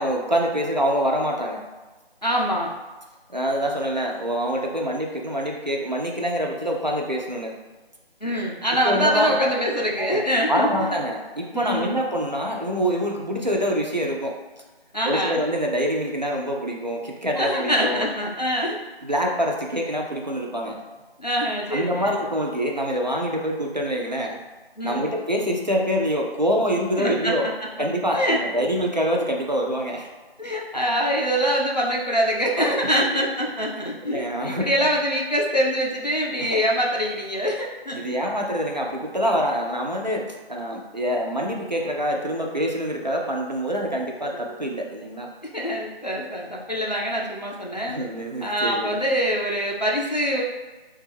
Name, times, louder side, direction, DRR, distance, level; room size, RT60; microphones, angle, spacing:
voice 1, 0.0-1.6 3.3-7.5 8.8-9.4 10.0-10.2 10.5-14.3 15.0-18.1 19.0-20.8 21.7-24.4 24.8-27.5 27.8-30.1 33.1-33.2 34.0-34.7 36.4-36.6 37.9-45.3 47.8-49.0, equal, 45° right, 0 dB, 0.4 m, -25 dB
voice 2, 2.2-2.7 8.2-11.0 11.5-12.0 14.9-15.4 17.4-18.8 21.2-22.1 24.8-25.1 27.0-27.3 27.8-27.9 28.1-28.4 30.4-38.1 44.3-44.5 45.4-48.0 48.4-50.4, equal, 45° left, -3 dB, 0.4 m, -24 dB
3.4 x 2.3 x 3.3 m, 1.3 s
figure-of-eight pair, 180°, 31 cm